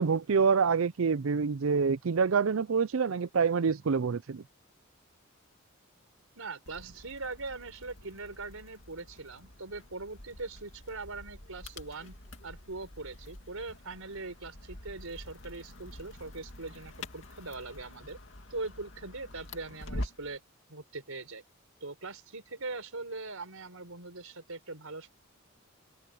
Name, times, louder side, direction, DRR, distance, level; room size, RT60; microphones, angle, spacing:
voice 1, 0.0-4.4, right 5 dB, 75° right, 0.5 m, -26 dB
voice 2, 6.4-12.1 12.4-18.2 18.5-20.4 20.7-21.4 21.8-25.1, right 3 dB, 90° right, 4.6 m, -41 dB
sound 1, 6.6-20.4, left 1 dB, 60° left, 2.7 m, -46 dB
head